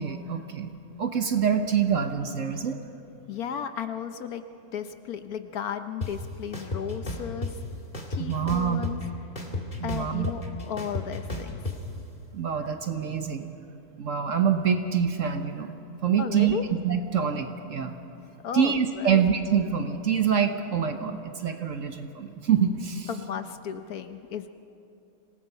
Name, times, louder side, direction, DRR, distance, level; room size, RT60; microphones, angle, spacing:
voice 1, 0.0-2.8 8.2-8.8 9.8-10.3 12.3-13.5 14.0-15.7 16.0-16.6 16.8-17.9 18.5-23.1, right 7 dB, 55° right, 7 dB, 1.1 m, -26 dB
voice 2, 3.3-4.4 4.7-7.5 8.1-9.0 9.8-11.6 16.2-16.6 18.4-19.3 23.1-24.5, left 8 dB, 65° left, 9 dB, 1.1 m, -34 dB
sound 1, 6.0-6.1 6.5-7.5 7.9-9.0 9.4-11.8, left 2 dB, 25° left, 2.1 m, -32 dB
26.0 x 18.0 x 5.5 m, 2.7 s
omnidirectional pair, 1.9 m